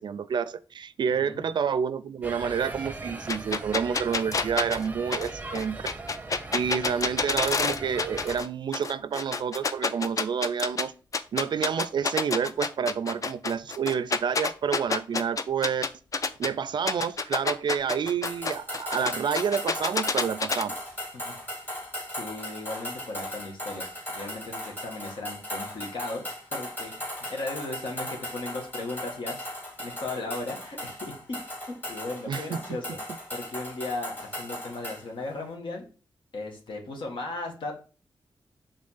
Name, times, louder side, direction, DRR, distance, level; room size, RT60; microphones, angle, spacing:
voice 1, 0.0-5.8 6.5-10.9 11.3-15.8 16.4-20.7 32.3-32.4, right 7 dB, 60° right, 0.4 m, -29 dB
sound 1, 2.2-8.4, right 2 dB, 20° right, 0.7 m, -40 dB
sound 2, 3.3-8.5 8.7-10.8 11.1-16.5 16.9-20.6, left 4 dB, 40° left, 0.4 m, -28 dB
sound 3, 18.3-35.0, left 1 dB, 25° left, 3.0 m, -37 dB
voice 2, 22.1-29.5 29.8-31.2 31.9-33.0 33.3-35.8 36.3-37.8, left 2 dB, 75° left, 1.6 m, -36 dB
5.3 x 3.6 x 5.5 m
wide cardioid pair, 155°, 9 cm